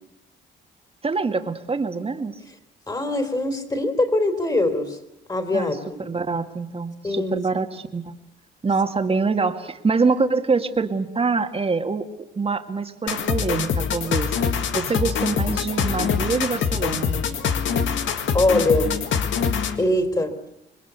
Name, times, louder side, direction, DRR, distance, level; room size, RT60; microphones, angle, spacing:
voice 1, 1.0-2.4 5.5-8.2 8.6-12.1 12.4-14.3 14.7-17.2, right 4 dB, 30° right, 7 dB, 2.1 m, -25 dB
voice 2, 2.9-5.0 5.3-6.0 7.0-7.4 14.7-14.8 18.3-19.0 19.8-20.3, left 2 dB, 20° left, 8 dB, 3.4 m, -22 dB
sound 1, 13.1-19.9, left 7 dB, 75° left, 1.9 m, -24 dB
26.0 x 21.5 x 8.3 m, 0.86 s
cardioid pair, 90°, 20 cm